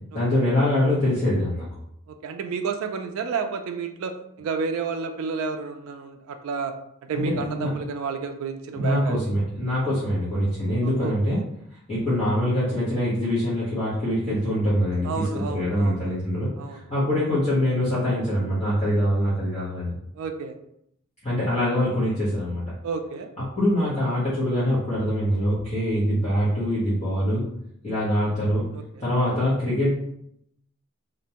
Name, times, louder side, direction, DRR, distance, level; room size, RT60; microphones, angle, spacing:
voice 1, 0.1-1.7 7.1-7.7 8.7-11.4 11.9-19.9 21.2-22.7 23.6-27.4 27.8-28.6 29.0-29.9, equal, 30° left, -11 dB, 0.8 m, -24 dB
voice 2, 2.1-6.7 7.0-9.3 10.8-11.4 15.0-16.0 16.6-16.8 20.2-20.5 22.8-23.3 28.7-29.1, right 5 dB, 75° right, 6 dB, 0.3 m, -31 dB
2.4 x 2.1 x 2.8 m, 0.76 s
head